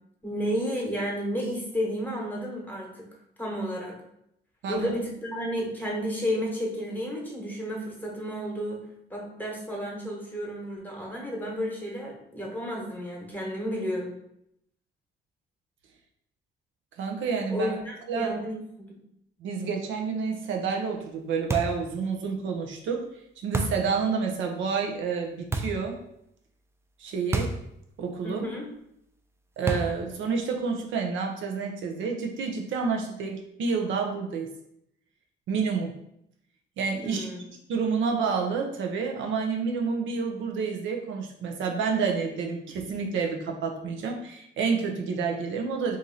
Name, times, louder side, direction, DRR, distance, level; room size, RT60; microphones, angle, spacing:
voice 1, 0.2-3.1 3.4-4.0 4.7-8.8 9.1-14.2 17.5-19.0 28.2-28.7 37.0-37.4, equal, 10° left, -2 dB, 1.1 m, -32 dB
voice 2, 4.6-5.0 17.0-17.8 18.1-18.3 19.4-23.1 23.4-26.0 27.0-27.6 28.0-28.4 29.6-34.5 35.5-35.9 36.8-37.3 37.7-46.0, right 5 dB, 75° right, 2 dB, 0.6 m, -29 dB
sound 1, 21.5-21.9 23.5-23.9 25.5-25.9 27.3-27.7 28.0-28.1 29.7-30.1, right 2 dB, 15° right, 0.4 m, -29 dB
2.9 x 2.6 x 3.9 m, 0.76 s
cardioid pair, 90°, 20 cm